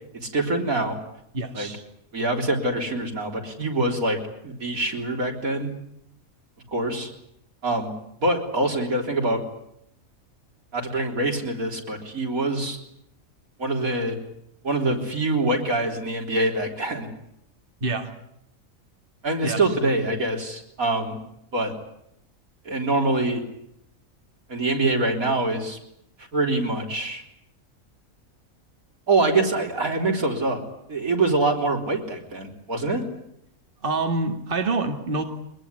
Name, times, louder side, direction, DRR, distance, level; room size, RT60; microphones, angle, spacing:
voice 1, 0.1-1.0 1.5-1.7 2.1-5.7 6.7-7.1 7.6-7.9 8.2-9.4 10.7-12.8 13.6-14.2 14.6-17.1 19.2-21.2 21.5-21.7 22.7-23.4 24.5-25.8 26.3-27.2 29.1-30.6 30.9-33.1, right 2 dB, 80° right, 2 dB, 4.2 m, -24 dB
voice 2, 1.3-1.8 17.8-18.1 19.4-19.6 33.8-35.2, right 3 dB, 40° right, 4 dB, 2.3 m, -26 dB
23.5 x 20.0 x 9.6 m, 0.76 s
omnidirectional pair, 1.5 m